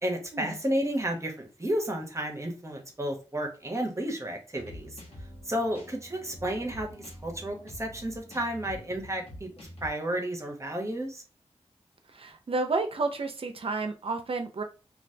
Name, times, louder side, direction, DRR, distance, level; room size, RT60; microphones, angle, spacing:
voice 1, 0.0-4.9 5.5-11.2, right 1 dB, 25° right, 2 dB, 1.1 m, -32 dB
sound 1, 4.5-9.9, left 1 dB, 60° left, 1.2 m, -46 dB
voice 2, 12.1-14.6, right 3 dB, 55° right, 6 dB, 0.7 m, -31 dB
3.1 x 2.5 x 2.8 m, 0.34 s
cardioid pair, 50°, 11 cm